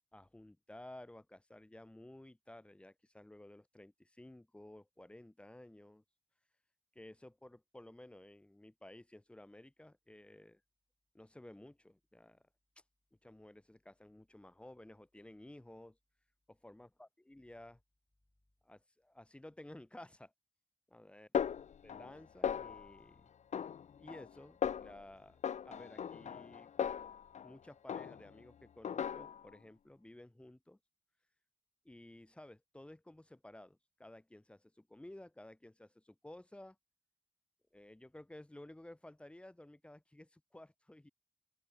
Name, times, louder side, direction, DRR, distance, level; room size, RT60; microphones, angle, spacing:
voice 1, 0.1-6.0 6.9-10.6 11.1-12.4 13.2-16.0 16.5-17.8 18.6-20.3 20.9-21.3 21.8-23.3 24.0-25.4 25.6-26.7 27.4-30.8 31.8-36.8 37.7-41.1, left 1 dB, 10° left, 2.5 m, -55 dB
Snare drum, 21.3-22.2 22.4-23.0 23.5-24.3 24.6-25.0 25.4-27.5 27.9-28.4 28.8-29.5, left 8 dB, 75° left, 1.2 m, -38 dB
open air
wide cardioid pair, 170°, 12 cm